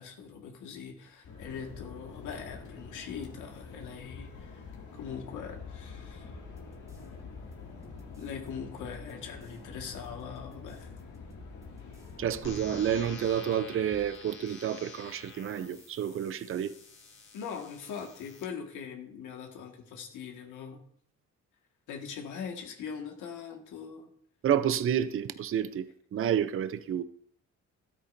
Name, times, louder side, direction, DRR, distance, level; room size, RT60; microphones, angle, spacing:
voice 1, 0.0-6.3 8.2-10.9 17.3-20.8 21.9-24.1, left 6 dB, 85° left, 1.8 m, -41 dB
sound 1, 1.2-13.3, left 4 dB, 70° left, 2.4 m, -46 dB
sound 2, 6.3-8.5 8.8-9.6 9.9-13.5 13.8-14.8 15.1-15.2 15.4-16.1, equal, 10° right, 2.3 m, -55 dB
voice 2, 12.2-16.7 24.4-27.0, right 9 dB, 45° right, 0.6 m, -30 dB
sound 3, 12.4-18.4, left 5 dB, 40° left, 1.5 m, -48 dB
12.5 x 8.6 x 2.7 m
cardioid pair, 90°, 30 cm